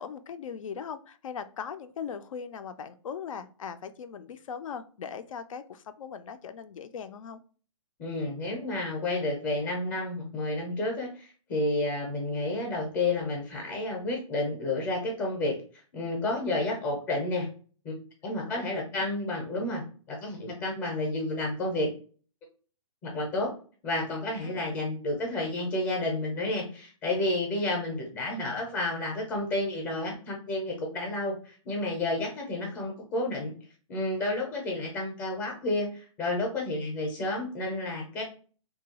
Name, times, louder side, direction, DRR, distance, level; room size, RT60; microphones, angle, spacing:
voice 1, 0.0-7.4 18.4-19.1 24.4-24.7 27.6-27.8, left 7 dB, 80° left, 10 dB, 0.4 m, -40 dB
voice 2, 8.0-15.6 15.9-17.5 17.8-17.9 18.2-19.8 20.1-21.9 23.0-23.5 23.8-33.5 33.9-38.2, left 2 dB, 20° left, 0 dB, 0.5 m, -30 dB
2.8 x 2.3 x 2.8 m, 0.40 s
hypercardioid pair, 165°, 17 cm